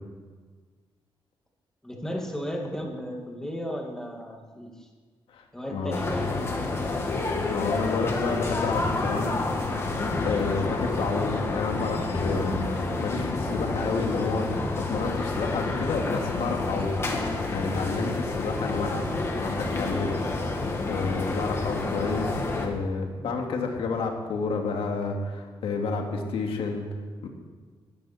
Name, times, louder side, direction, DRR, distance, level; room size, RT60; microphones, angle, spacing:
voice 1, 1.8-4.9 5.5-6.8, equal, 5° left, 0 dB, 2.2 m, -35 dB
voice 2, 5.7-6.0 7.5-9.4 10.2-12.7 13.0-19.0 19.4-20.2 20.9-26.9 27.2-27.3, left 4 dB, 90° left, 2 dB, 2.5 m, -30 dB
sound 1, 5.9-22.7, left 3 dB, 30° left, 1.9 m, -29 dB
20.5 x 14.0 x 4.4 m, 1.5 s
wide cardioid pair, 180°, 9 cm